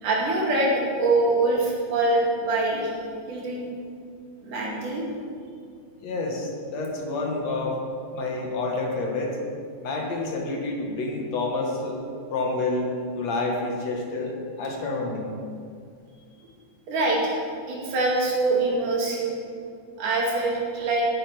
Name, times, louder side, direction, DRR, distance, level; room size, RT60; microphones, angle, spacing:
voice 1, 0.0-2.9 3.3-3.7 4.4-5.0 16.9-17.4 17.7-19.4 20.0-21.1, right 2 dB, 85° right, -3 dB, 3.8 m, -24 dB
voice 2, 6.0-7.8 8.1-9.4 9.8-12.0 12.3-12.9 13.2-15.4, left 2 dB, 60° left, 0 dB, 2.5 m, -28 dB
12.5 x 10.0 x 4.9 m, 2.3 s
omnidirectional pair, 3.6 m